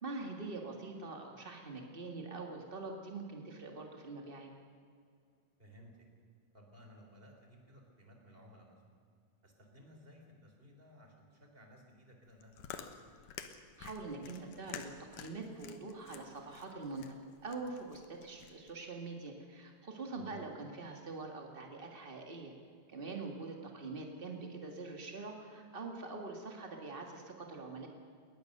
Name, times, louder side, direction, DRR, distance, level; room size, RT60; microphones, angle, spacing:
voice 1, 0.0-4.5 13.8-22.5 22.9-27.9, right 3 dB, 80° right, 2 dB, 0.5 m, -44 dB
voice 2, 5.6-6.1 6.5-8.8 9.4-12.9 20.2-20.4, equal, 15° right, 2 dB, 3.2 m, -58 dB
Chewing mastication, 12.2-18.7, left 8 dB, 65° left, 2.4 m, -50 dB
21.5 x 19.0 x 6.7 m, 2.2 s
omnidirectional pair, 4.5 m